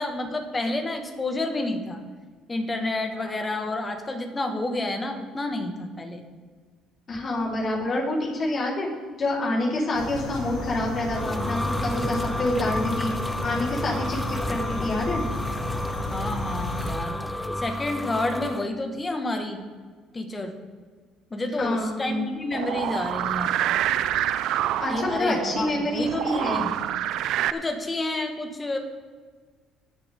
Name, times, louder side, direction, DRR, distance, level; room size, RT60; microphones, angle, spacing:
voice 1, 0.0-2.0 2.5-6.2 16.1-17.2 17.6-19.6 20.1-20.5 21.3-23.5 24.9-26.7 27.5-28.8, left 2 dB, 20° left, 4 dB, 1.9 m, -29 dB
voice 2, 7.1-8.9 9.2-13.1 13.4-15.2 21.6-22.3 24.8-26.8, left 2 dB, 45° left, -4 dB, 4.2 m, -27 dB
sound 1, 9.9-16.9, left 1 dB, 70° left, 3.4 m, -33 dB
sound 2, 10.7-18.7, left 1 dB, 5° left, 0.6 m, -31 dB
sound 3, 22.5-27.5, right 12 dB, 70° right, 0.5 m, -27 dB
21.0 x 7.3 x 3.9 m, 1.5 s
cardioid pair, 95°, 0 cm